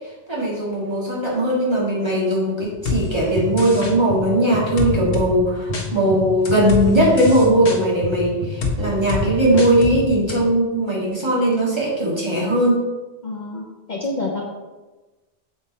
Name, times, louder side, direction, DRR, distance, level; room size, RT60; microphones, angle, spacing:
voice 1, 0.3-12.8, right 1 dB, 25° right, -5 dB, 2.0 m, -19 dB
sound 1, 2.6-4.2 4.5-5.8 6.1-10.4, right 1 dB, 50° right, 2.5 m, -30 dB
sound 2, 2.9-3.0 3.6-3.9 4.8-5.3 5.7-5.9 6.5-6.8 7.2-7.8 8.6-8.8 9.1-9.2 9.6-10.0 10.3-10.4, left 5 dB, 70° left, 1.3 m, -25 dB
voice 2, 13.2-14.4, left 2 dB, 45° left, -1 dB, 0.8 m, -28 dB
7.3 x 4.8 x 4.3 m, 1.2 s
omnidirectional pair, 1.1 m